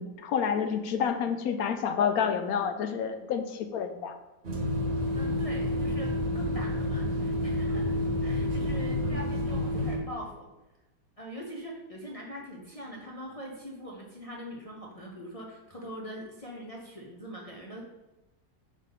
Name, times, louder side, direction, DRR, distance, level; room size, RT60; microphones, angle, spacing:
voice 1, 0.0-4.2, left 7 dB, 70° left, 8 dB, 0.9 m, -29 dB
sound 1, 4.4-10.0, left 1 dB, 45° right, 1.1 m, -29 dB
voice 2, 5.2-7.9 8.2-10.4 11.2-17.8, equal, 40° left, -2 dB, 0.5 m, -42 dB
5.3 x 3.7 x 5.6 m, 1.0 s
omnidirectional pair, 1.9 m